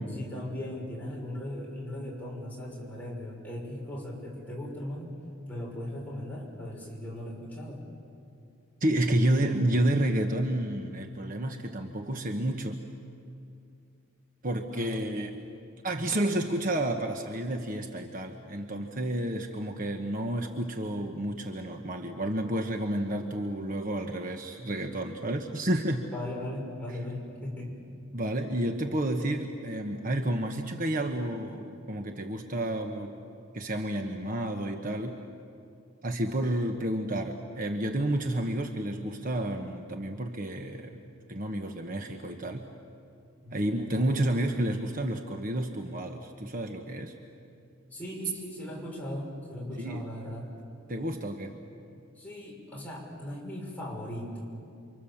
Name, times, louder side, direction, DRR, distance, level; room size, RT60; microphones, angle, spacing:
voice 1, 0.2-5.1 5.5-7.9 14.7-15.0 26.1-27.8 43.4-43.8 47.9-50.5 52.1-54.5, left 1 dB, 10° left, -3 dB, 6.0 m, -38 dB
voice 2, 8.8-12.8 14.4-15.4 15.8-26.1 28.1-33.1 33.5-35.2 36.0-41.0 41.3-42.6 43.5-47.1 49.8-50.1 50.9-51.5, right 1 dB, 40° right, 4 dB, 1.2 m, -30 dB
29.0 x 25.0 x 7.2 m, 2.5 s
head